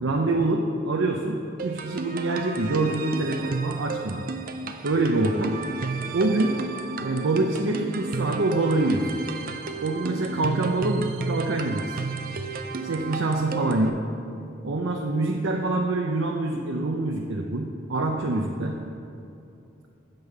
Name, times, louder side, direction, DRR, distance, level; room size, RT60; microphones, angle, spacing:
voice 1, 0.0-1.4 1.6-4.3 4.8-5.5 6.1-6.5 7.0-9.1 9.8-12.0 12.8-14.0 14.6-18.8, right 2 dB, 90° right, 1 dB, 0.6 m, -25 dB
sound 1, 1.6-13.9, right 4 dB, 45° right, 0.5 m, -33 dB
8.0 x 5.3 x 6.7 m, 2.7 s
head